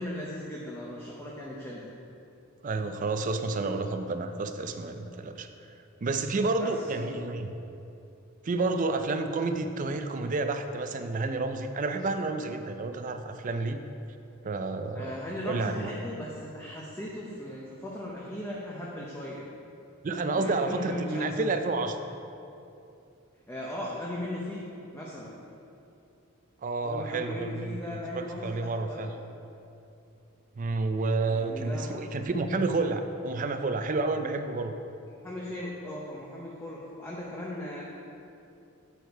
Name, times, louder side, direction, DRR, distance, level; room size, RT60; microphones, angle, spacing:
voice 1, 0.0-1.9 6.6-7.3 14.9-19.4 20.3-21.2 21.5-21.6 23.5-24.6 24.9-25.3 26.8-29.1 31.3-31.9 35.2-37.8, left 1 dB, 10° left, -5 dB, 0.6 m, -38 dB
voice 2, 2.6-5.5 6.0-7.5 8.4-13.8 14.4-15.1 15.4-15.9 20.0-22.0 26.6-29.1 30.6-34.7, right 3 dB, 35° right, 7 dB, 0.4 m, -30 dB
8.2 x 4.5 x 4.6 m, 2.7 s
head